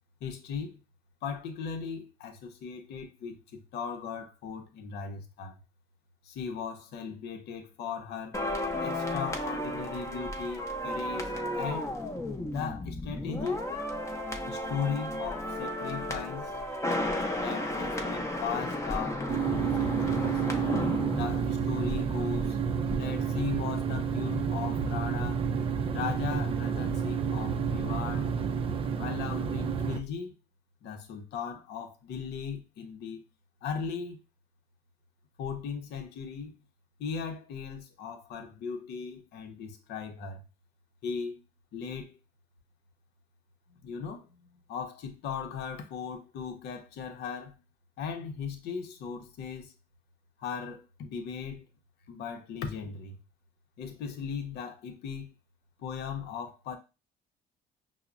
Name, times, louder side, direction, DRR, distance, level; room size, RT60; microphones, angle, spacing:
voice 1, 0.2-0.8 1.2-5.5 6.2-8.4 8.8-11.9 12.5-13.7 14.5-16.5 17.3-20.4 21.1-22.6 22.9-25.4 25.9-28.3 29.0-30.4 30.8-33.2 33.6-34.2 35.4-36.5 37.0-40.4 41.0-41.4 41.7-42.2 43.7-47.6 48.0-49.7 50.4-51.6 52.1-53.2 53.8-55.3 55.8-56.8, left 6 dB, 75° left, 0.7 m, -38 dB
sound 1, 8.3-22.5 22.7-23.0, left 1 dB, 15° left, 0.6 m, -33 dB
sound 2, 19.3-30.0, right 7 dB, 35° right, 0.4 m, -30 dB
5.6 x 2.0 x 2.5 m
cardioid pair, 110°, 17 cm